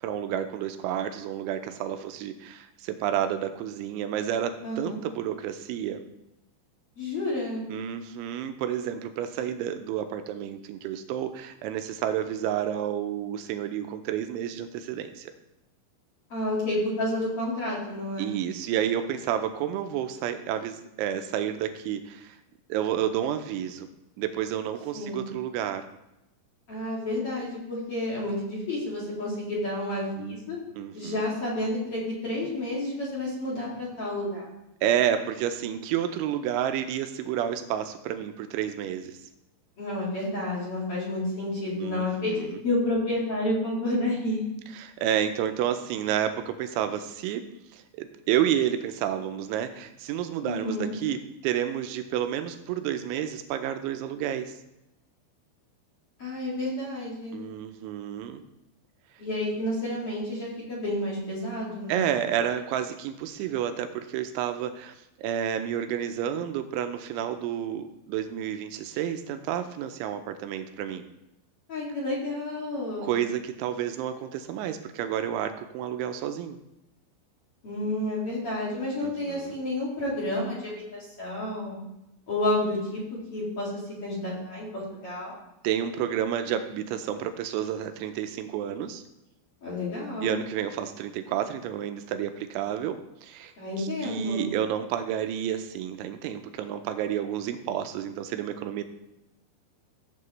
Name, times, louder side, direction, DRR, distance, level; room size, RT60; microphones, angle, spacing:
voice 1, 0.0-6.0 7.7-15.3 18.2-22.4 22.7-23.9 24.2-25.8 30.8-31.2 34.8-39.2 41.8-42.6 44.7-47.5 47.7-54.5 57.3-58.4 61.9-71.0 73.0-76.6 79.0-79.6 85.6-89.0 90.2-98.8, right 10 dB, 85° right, 8 dB, 2.9 m, -30 dB
voice 2, 4.6-5.0 7.0-7.6 16.3-18.3 24.9-25.3 26.7-30.6 30.9-34.5 39.8-44.4 50.4-50.9 56.2-57.4 59.2-62.1 71.7-73.2 77.6-81.8 82.3-83.7 84.0-85.3 89.6-90.4 93.6-94.5, left 1 dB, 40° left, -5 dB, 2.5 m, -30 dB
15.5 x 7.6 x 3.2 m, 0.89 s
omnidirectional pair, 5.7 m